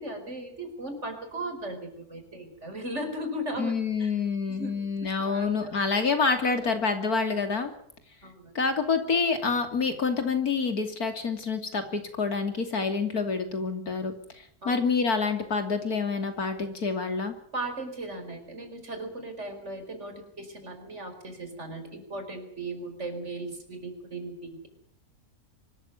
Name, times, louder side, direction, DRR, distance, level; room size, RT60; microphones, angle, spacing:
voice 1, 0.0-3.7 4.0-4.1 4.5-4.7 5.2-6.0 6.5-6.7 8.2-8.5 14.6-14.8 17.5-24.7, right 1 dB, 50° right, 6 dB, 5.1 m, -37 dB
voice 2, 3.6-7.7 8.6-17.3, left 4 dB, 80° left, 7 dB, 3.5 m, -27 dB
24.5 x 14.0 x 9.6 m, 0.71 s
omnidirectional pair, 1.6 m